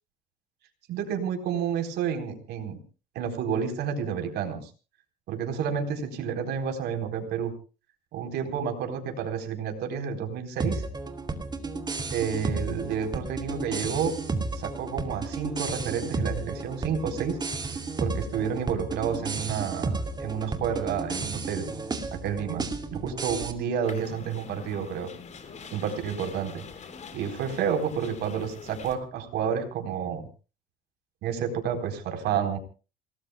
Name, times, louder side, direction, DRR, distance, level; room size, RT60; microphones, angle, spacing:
voice 1, 0.9-2.8 3.1-4.7 5.3-7.5 8.1-10.8 12.1-14.1 14.5-17.4 18.0-21.6 22.2-25.1 25.7-26.6 27.1-30.2 31.2-32.6, right 7 dB, 80° right, 5 dB, 4.2 m, -30 dB
sound 1, 10.6-23.5, right 3 dB, 25° right, 2.5 m, -33 dB
sound 2, 23.8-29.0, left 5 dB, 45° left, 3.7 m, -44 dB
28.0 x 19.0 x 2.3 m, 0.35 s
cardioid pair, 110°, 17 cm